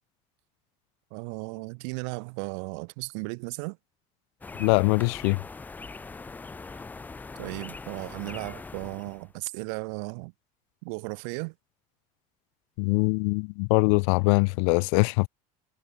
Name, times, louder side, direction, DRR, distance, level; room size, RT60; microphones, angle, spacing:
voice 1, 1.1-3.8 7.4-10.3 10.8-11.5, right 35 dB, 80° right, 5.3 m, -35 dB
sound 1, 4.4-9.3, left 3 dB, 10° left, 3.5 m, -42 dB
voice 2, 4.6-5.4 12.8-15.3, left 37 dB, 80° left, 0.7 m, -23 dB
cardioid pair, 175°, 15 cm